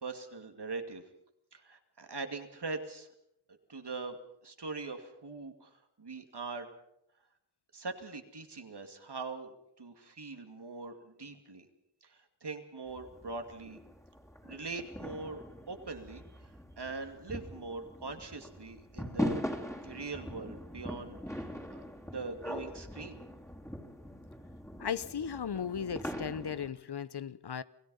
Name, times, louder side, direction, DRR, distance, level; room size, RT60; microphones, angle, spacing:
voice 1, 0.0-1.0 1.5-3.1 3.7-4.2 4.4-5.7 6.0-6.7 7.7-11.7 12.0-12.1 12.4-13.8 14.4-16.2 16.8-19.4 19.8-23.2, right 3 dB, 70° right, 2.5 m, -42 dB
sound 1, 12.9-26.7, equal, 5° left, 3.4 m, -41 dB
voice 2, 24.8-27.6, left 7 dB, 70° left, 0.8 m, -36 dB
27.5 x 17.0 x 5.6 m
cardioid pair, 40°, 42 cm